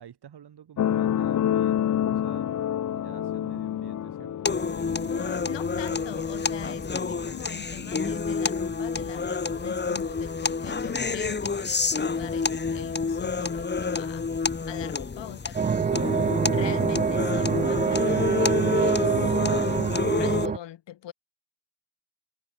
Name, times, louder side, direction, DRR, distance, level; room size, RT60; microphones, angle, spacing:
voice 1, 0.0-2.5 2.9-4.5, right 9 dB, 60° right, 5.9 m, -49 dB
sound 1, 0.8-7.8 8.7-8.8, left 10 dB, 45° left, 0.7 m, -29 dB
sound 2, 4.5-20.5, left 4 dB, 25° left, 1.5 m, -28 dB
voice 2, 5.1-14.3 14.7-16.1 16.5-19.3 20.2-21.1, left 12 dB, 75° left, 2.1 m, -42 dB
sound 3, 15.6-20.6, right 6 dB, 20° right, 0.4 m, -25 dB
cardioid pair, 100°, 44 cm